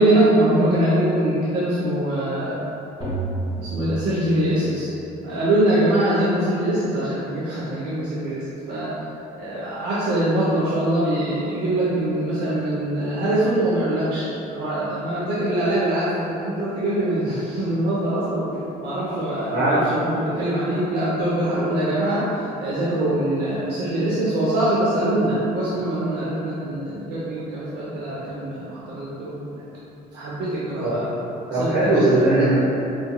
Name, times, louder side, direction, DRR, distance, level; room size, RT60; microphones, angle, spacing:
voice 1, 0.0-2.6 3.6-4.9 5.2-8.9 9.4-18.5 18.8-29.6 30.1-31.1 31.6-32.0, right 1 dB, 85° right, -9 dB, 0.6 m, -23 dB
sound 1, 3.0-4.9, right 2 dB, 25° right, 1.1 m, -30 dB
voice 2, 31.5-32.6, right 1 dB, 60° right, -12 dB, 1.1 m, -19 dB
4.2 x 2.8 x 2.2 m, 2.9 s
cardioid pair, 110°, 17 cm